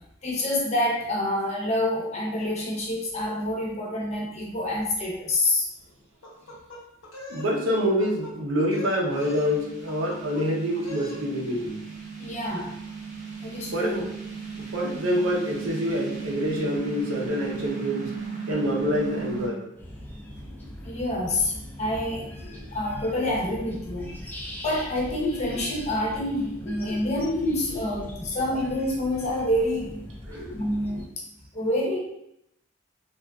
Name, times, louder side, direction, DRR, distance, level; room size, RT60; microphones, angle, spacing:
voice 1, 0.2-5.7 12.2-12.8 13.4-14.0 20.8-22.3 22.7-24.1 24.6-30.0 30.5-31.2 31.5-32.0, left 1 dB, 35° left, -2 dB, 0.7 m, -27 dB
sound 1, 6.2-7.5 7.8-8.3 8.6-9.6 9.9-10.5 10.8-11.2, left 1 dB, 85° left, 0.8 m, -42 dB
voice 2, 7.3-11.8 13.7-14.0 14.6-18.1 18.5-19.7 22.4-22.5 26.7-26.8 30.3-30.5, equal, 90° right, -2 dB, 0.7 m, -27 dB
sound 2, 9.1-19.5, right 5 dB, 35° right, 0.6 m, -36 dB
sound 3, 19.8-31.1, left 1 dB, 10° left, 0.3 m, -41 dB
3.3 x 2.4 x 2.3 m, 0.79 s
head